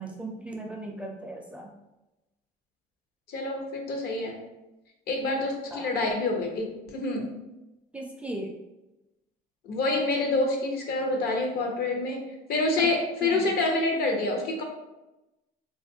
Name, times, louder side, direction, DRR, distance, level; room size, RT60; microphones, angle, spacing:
voice 1, 0.0-1.7 5.2-5.4 5.7-5.9 7.9-8.5 12.8-12.9 13.2-13.5, right 1 dB, 5° right, 0 dB, 0.4 m, -37 dB
voice 2, 3.3-4.4 5.1-7.4 9.6-14.6, left 2 dB, 65° left, 2 dB, 0.7 m, -27 dB
3.1 x 2.4 x 2.6 m, 0.99 s
cardioid pair, 110°, 17 cm